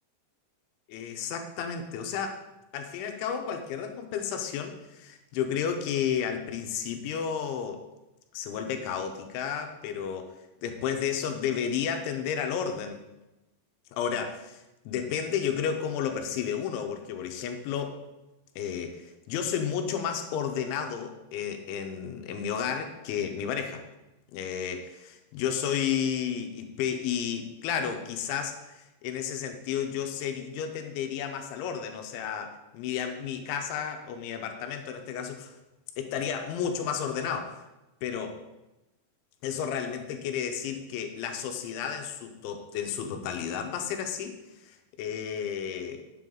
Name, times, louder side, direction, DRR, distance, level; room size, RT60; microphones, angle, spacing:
voice 1, 0.9-2.4 2.7-7.8 8.3-10.3 10.6-13.0 13.9-18.0 18.6-23.8 24.3-35.5 36.0-37.6 38.0-38.4 39.4-44.4 44.6-46.2, left 8 dB, 80° left, 6 dB, 3.0 m, -32 dB
9.2 x 7.6 x 3.7 m, 0.98 s
omnidirectional pair, 5.5 m